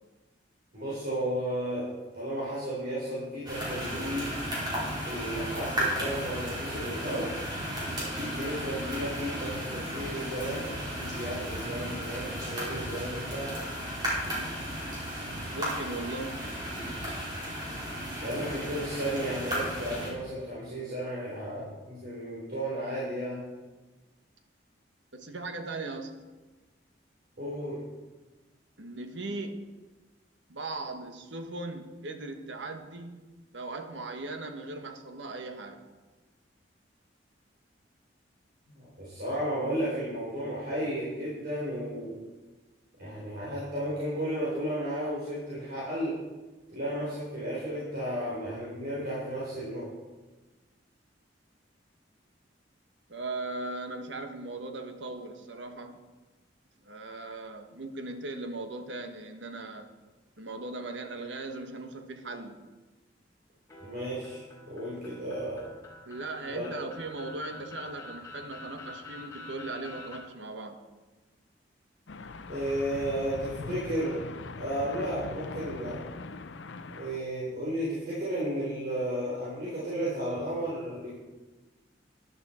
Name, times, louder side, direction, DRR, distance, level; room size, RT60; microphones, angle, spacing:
voice 1, 0.7-4.4 5.0-7.4 8.0-13.6 18.2-23.4 27.4-27.8 38.7-42.2 43.0-46.2 46.7-49.9 63.8-65.7 66.5-66.8 72.5-74.3 74.6-76.1 77.0-81.1, right 1 dB, 55° right, -8 dB, 3.9 m, -33 dB
sound 1, 3.5-20.1, equal, 25° right, 4.6 m, -34 dB
voice 2, 15.5-16.4 25.1-26.1 28.8-29.6 30.5-33.2 33.5-35.8 53.1-56.0 56.8-59.9 60.4-62.6 66.1-70.8, right 2 dB, 80° right, 6 dB, 1.3 m, -38 dB
sound 2, 63.7-70.2, left 2 dB, 15° left, 2.8 m, -47 dB
sound 3, 72.1-77.2, left 3 dB, 85° left, 0.7 m, -41 dB
13.0 x 11.0 x 4.3 m, 1.2 s
head